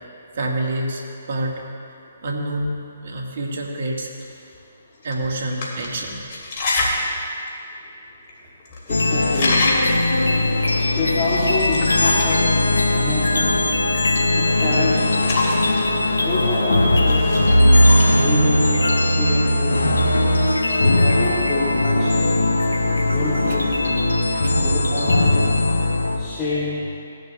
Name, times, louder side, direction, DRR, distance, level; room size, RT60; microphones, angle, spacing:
voice 1, 0.3-1.6 2.2-2.7 3.0-4.1 5.0-6.2 23.4-23.6 23.8-23.9 24.3-24.6, right 1 dB, 60° right, 0 dB, 1.4 m, -27 dB
sound 1, 4.2-4.3 5.0-5.1 5.5-7.1 7.5-7.6 8.3-8.4 8.6-8.9 9.2-10.1 11.2-12.5 14.3-15.8 17.0-18.3, left 2 dB, 45° left, 2.2 m, -26 dB
sound 2, 8.9-26.2, left 1 dB, 90° left, 0.9 m, -19 dB
voice 2, 8.9-9.6 10.3-12.4 12.7-13.6 14.3-15.2 16.2-17.3 18.2-19.8 20.8-22.3 23.1-23.7 24.6-25.4 26.2-26.8, left 2 dB, 25° left, -9 dB, 2.2 m, -27 dB
18.0 x 10.5 x 2.2 m, 2.5 s
figure-of-eight pair, 140°, 0 cm